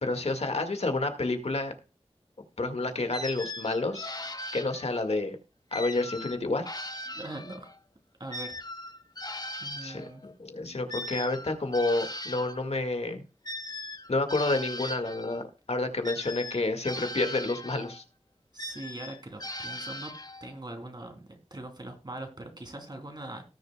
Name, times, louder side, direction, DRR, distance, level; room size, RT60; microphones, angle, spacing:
voice 1, 0.0-1.7 2.6-4.1 4.5-5.4 5.7-6.7 9.8-13.2 14.1-18.0, left 2 dB, 70° left, 7 dB, 1.8 m, -29 dB
sound 1, 3.1-5.2 5.7-7.8 8.3-12.7 13.5-15.4 16.0-18.0 18.6-20.6, left 1 dB, 35° left, 0.9 m, -39 dB
voice 2, 7.1-7.7 8.2-8.6 9.6-10.2 18.5-20.1 20.4-23.4, right 1 dB, 40° right, 4 dB, 3.1 m, -41 dB
18.5 x 6.8 x 2.3 m, 0.32 s
wide cardioid pair, 60°, 11 cm